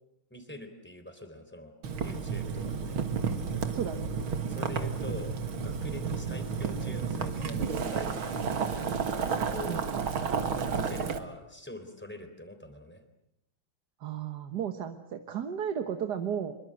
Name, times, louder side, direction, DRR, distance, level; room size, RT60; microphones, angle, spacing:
voice 1, 0.3-1.7 2.0-3.0 4.4-5.4 5.6-8.9 9.2-9.8 10.8-13.0, left 1 dB, 5° left, 7 dB, 3.6 m, -44 dB
Boiling, 1.8-11.2, right 6 dB, 75° right, 2.6 m, -31 dB
voice 2, 3.7-4.1 9.7-9.8 14.0-16.5, right 8 dB, 55° right, 7 dB, 1.8 m, -34 dB
26.0 x 23.5 x 7.8 m, 0.84 s
omnidirectional pair, 2.3 m